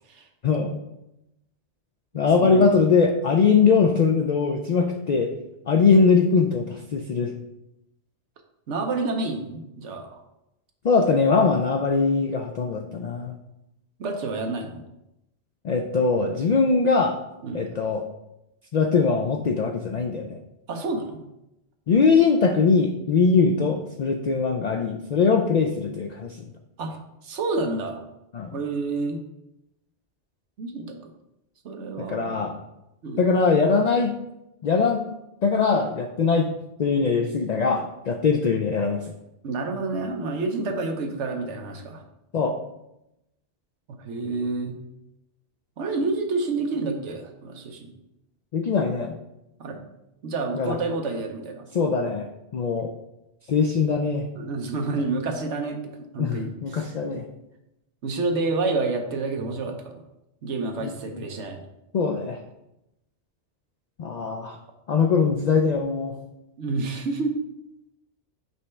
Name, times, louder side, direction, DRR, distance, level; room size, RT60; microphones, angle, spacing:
voice 1, 0.4-0.8 2.1-5.3 5.7-7.3 10.8-13.3 15.6-17.2 17.5-18.1 18.7-20.4 21.9-26.4 28.3-28.5 32.0-32.5 33.2-34.1 34.6-35.0 35.4-36.5 36.8-39.0 42.3-42.6 48.5-49.2 50.5-50.8 51.7-52.3 52.5-52.9 53.5-54.3 56.2-57.3 60.8-60.9 61.9-62.4 64.0-64.6 64.9-66.1, left 5 dB, 70° left, 4 dB, 0.4 m, -21 dB
voice 2, 2.4-2.9 8.7-10.2 14.0-14.8 17.4-17.7 20.7-21.2 26.8-28.0 28.5-29.2 30.6-30.9 31.6-32.6 33.0-33.2 39.4-42.0 44.0-44.8 45.8-47.9 49.6-49.8 50.2-51.7 54.3-56.9 58.0-60.0 60.4-61.6 66.6-67.4, right 3 dB, 75° right, 4 dB, 1.1 m, -29 dB
5.3 x 3.2 x 5.5 m, 0.89 s
omnidirectional pair, 1.2 m